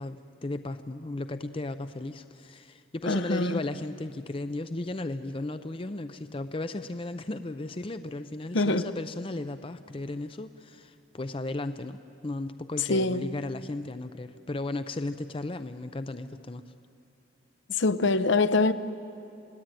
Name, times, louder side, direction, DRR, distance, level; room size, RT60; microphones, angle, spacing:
voice 1, 0.0-16.6, left 2 dB, 25° left, 0.5 m, -35 dB
voice 2, 3.1-3.6 8.5-8.9 12.9-13.3 17.7-18.7, left 3 dB, 65° left, 0.8 m, -24 dB
27.5 x 18.0 x 9.1 m
head